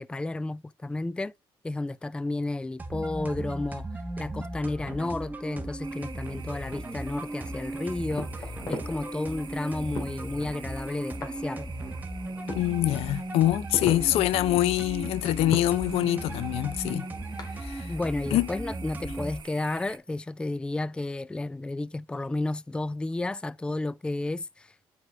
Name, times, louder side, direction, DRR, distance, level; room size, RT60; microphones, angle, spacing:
voice 1, 0.0-1.3 1.6-3.9 4.2-11.7 17.9-24.9, left 2 dB, 10° left, 0.4 m, -32 dB
sound 1, 2.8-19.4, right 1 dB, 15° right, 1.5 m, -37 dB
sound 2, 5.8-20.0, right 8 dB, 50° right, 1.4 m, -49 dB
sound 3, 7.2-18.7, left 2 dB, 40° left, 2.6 m, -42 dB
voice 2, 12.5-17.1 17.6-17.9 18.3-18.5, left 14 dB, 80° left, 0.5 m, -25 dB
8.0 x 5.0 x 3.8 m
cardioid pair, 90°, 10 cm